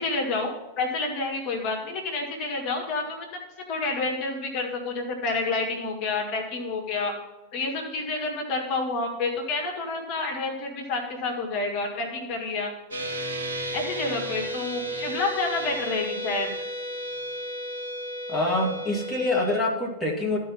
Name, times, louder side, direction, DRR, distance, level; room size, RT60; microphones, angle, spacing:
voice 1, 0.0-3.3 3.7-7.1 7.5-12.7 13.7-16.5, left 3 dB, 40° left, 2 dB, 1.9 m, -29 dB
sound 1, 12.9-19.6, equal, 70° right, 2.7 m, -33 dB
voice 2, 18.3-20.4, left 2 dB, 5° left, -2 dB, 2.0 m, -25 dB
13.5 x 4.7 x 5.6 m, 1.1 s
figure-of-eight pair, 90°, 0 cm